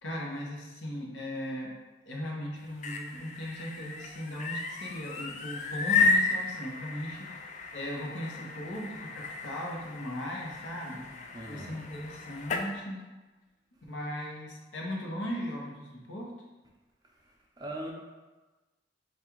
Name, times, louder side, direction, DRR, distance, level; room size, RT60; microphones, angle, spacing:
voice 1, 0.0-1.7 2.1-11.1 11.5-13.0 13.9-16.3, equal, 80° left, -2 dB, 0.9 m, -38 dB
sound 1, 2.6-12.7, left 4 dB, 40° left, 0.3 m, -33 dB
voice 2, 11.3-11.8 17.6-17.9, right 1 dB, 20° right, -2 dB, 0.6 m, -39 dB
3.5 x 2.4 x 4.5 m, 1.2 s
head